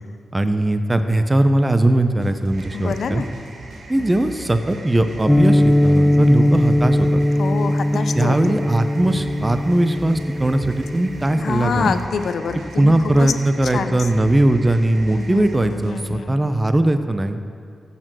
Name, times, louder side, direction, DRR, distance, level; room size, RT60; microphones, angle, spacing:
voice 1, 0.3-3.2 3.9-7.2 8.2-11.9 12.8-17.4, right 1 dB, 25° right, 8 dB, 0.8 m, -19 dB
sound 1, 2.2-16.2, right 2 dB, 85° right, 2.1 m, -40 dB
sound 2, 2.5-15.6, right 2 dB, 65° right, 1.8 m, -44 dB
voice 2, 2.7-3.3 4.0-4.1 6.2-6.5 7.4-8.5 11.3-12.9 13.2-13.3 13.6-14.0 15.1-16.5, left 6 dB, 75° left, 9 dB, 0.7 m, -27 dB
sound 3, 5.3-12.1, left 1 dB, 10° left, 0.5 m, -19 dB
15.5 x 6.9 x 6.2 m, 2.3 s
supercardioid pair, 45°, 0 cm